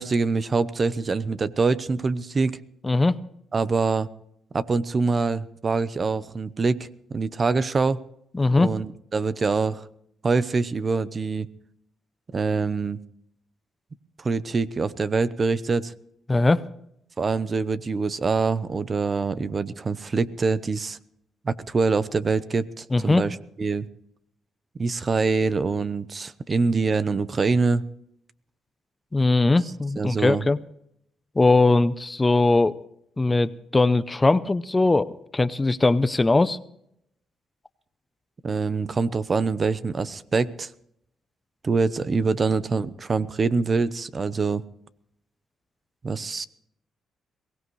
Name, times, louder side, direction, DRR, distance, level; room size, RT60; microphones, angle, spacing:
voice 1, 0.0-2.6 3.5-4.1 4.5-8.0 8.6-9.9 10.2-11.5 12.3-13.0 14.2-15.9 17.2-21.0 21.4-23.9 24.8-27.8 30.0-30.4 38.4-40.7 41.6-44.6 46.0-46.5, right 4 dB, 35° right, 15 dB, 0.8 m, -24 dB
voice 2, 2.8-3.2 8.3-8.7 16.3-16.6 22.9-23.3 29.1-30.6 31.4-32.8 33.2-36.6, left 2 dB, 20° left, 15 dB, 0.6 m, -20 dB
22.5 x 17.5 x 3.2 m, 0.74 s
cardioid pair, 90°, 0 cm